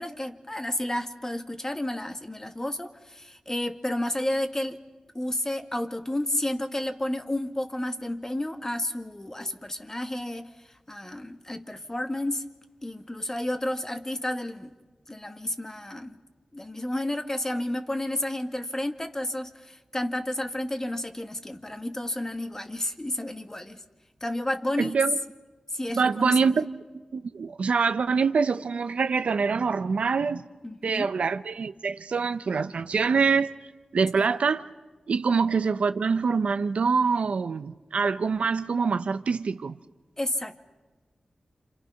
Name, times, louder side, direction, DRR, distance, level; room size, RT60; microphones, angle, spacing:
voice 1, 0.0-4.8 5.1-12.4 12.8-14.7 15.1-16.2 16.5-23.8 24.2-25.0 25.7-26.4 30.6-31.1 40.2-40.6, left 1 dB, 25° left, 1.9 m, -31 dB
voice 2, 24.8-25.2 25.9-26.7 27.1-30.5 30.8-33.5 33.9-34.7 35.1-39.8, right 5 dB, 85° right, 0.8 m, -25 dB
30.0 x 27.5 x 5.9 m
cardioid pair, 50°, 2 cm